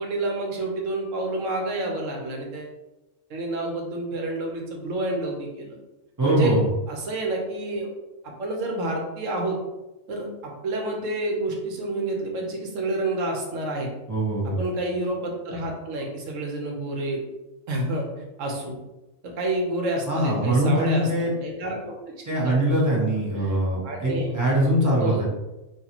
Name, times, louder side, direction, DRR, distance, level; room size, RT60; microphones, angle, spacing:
voice 1, 0.0-2.7 3.3-5.8 6.2-6.6 6.9-7.9 8.2-9.6 10.1-13.9 14.6-17.2 17.7-18.1 18.4-18.8 19.2-21.9 22.3-22.8 23.4-23.6 23.8-24.3 25.0-25.2, right 2 dB, 90° right, 1 dB, 1.2 m, -29 dB
voice 2, 6.2-6.6 14.1-14.6 20.1-21.3 22.3-25.2, right 1 dB, 15° right, -5 dB, 1.0 m, -22 dB
4.0 x 2.7 x 2.9 m, 1.0 s
omnidirectional pair, 1.3 m